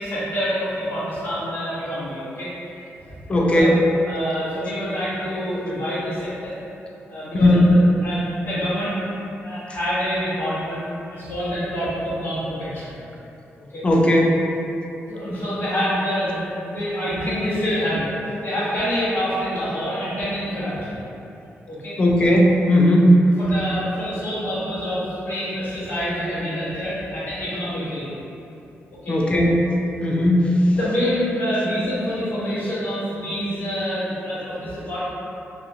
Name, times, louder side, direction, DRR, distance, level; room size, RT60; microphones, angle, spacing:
voice 1, 0.0-3.1 3.4-3.7 4.1-6.5 7.1-8.9 9.4-13.0 13.6-13.8 15.0-18.1 18.4-21.0 21.7-22.0 23.4-28.1 29.0-29.2 30.7-35.0, equal, 45° left, -11 dB, 1.0 m, -27 dB
voice 2, 3.3-3.7 7.4-7.6 13.8-14.4 22.0-23.1 29.1-29.7 30.0-30.5, left 1 dB, 25° left, -2 dB, 0.3 m, -17 dB
2.7 x 2.3 x 2.7 m, 2.8 s
wide cardioid pair, 155°, 5 cm